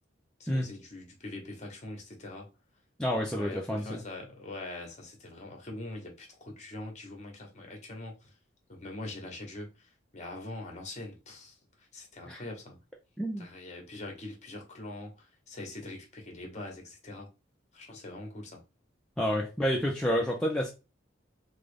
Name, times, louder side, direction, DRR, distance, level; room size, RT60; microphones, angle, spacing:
voice 1, 0.4-2.5 3.1-8.3 8.7-12.8 13.4-17.3 17.7-18.6, left 2 dB, 35° left, 0.9 m, -43 dB
voice 2, 3.0-4.0 12.3-12.4 13.2-13.5 19.2-20.7, equal, 5° left, 0.4 m, -29 dB
3.6 x 2.1 x 3.3 m
head